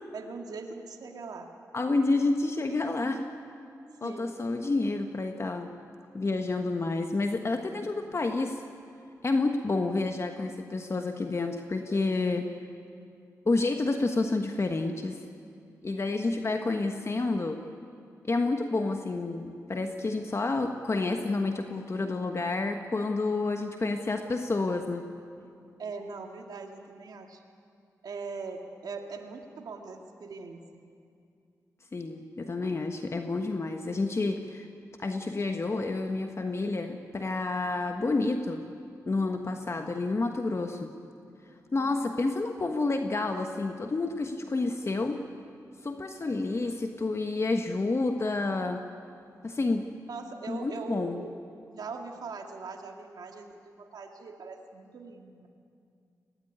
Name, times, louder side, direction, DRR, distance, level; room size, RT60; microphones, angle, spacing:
voice 1, 0.1-1.5 4.0-4.4 16.3-16.5 25.8-27.4 28.0-30.6 41.8-42.1 50.1-51.3 51.7-55.5, right 4 dB, 75° right, 3 dB, 2.1 m, -41 dB
voice 2, 1.7-3.2 4.0-5.7 6.1-8.6 9.2-12.5 13.5-15.2 15.8-17.6 18.2-25.1 31.9-34.7 35.0-38.6 39.1-40.9 41.7-45.2 45.8-48.8 49.4-49.9 50.5-51.2, left 3 dB, 40° left, 5 dB, 1.3 m, -29 dB
21.0 x 18.0 x 9.8 m, 2.4 s
cardioid pair, 55°, 7 cm